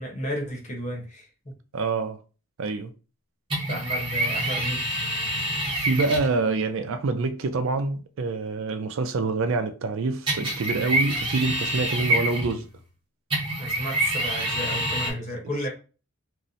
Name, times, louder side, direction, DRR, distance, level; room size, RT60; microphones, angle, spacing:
voice 1, 0.0-1.6 3.7-5.0 13.6-15.7, equal, 35° left, 0.9 m, -33 dB
voice 2, 1.7-2.2 2.6-2.9 5.7-12.7, right 3 dB, 60° right, 0.4 m, -26 dB
sound 1, 3.5-6.3 10.3-12.7 13.3-15.1, right 1 dB, 20° right, 0.9 m, -27 dB
2.7 x 2.0 x 3.8 m
head